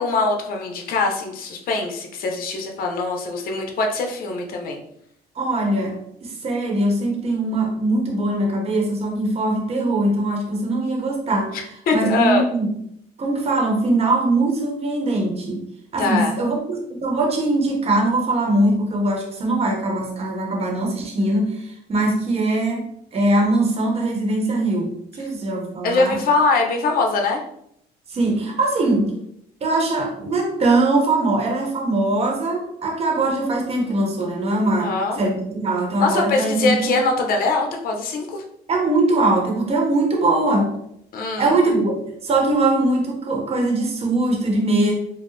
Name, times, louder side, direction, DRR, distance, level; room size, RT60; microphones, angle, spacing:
voice 1, 0.0-4.8 11.9-12.4 16.0-16.3 25.8-27.4 34.8-35.2 36.0-38.4 41.1-41.5, left 3 dB, 60° left, 2 dB, 0.8 m, -22 dB
voice 2, 5.3-12.7 13.2-15.7 15.9-22.8 23.1-26.2 28.1-29.1 29.6-36.9 38.7-40.7 41.4-41.9 42.2-44.9, right 2 dB, 35° right, 1 dB, 0.9 m, -21 dB
4.6 x 2.0 x 3.2 m, 0.72 s
cardioid pair, 110°, 17 cm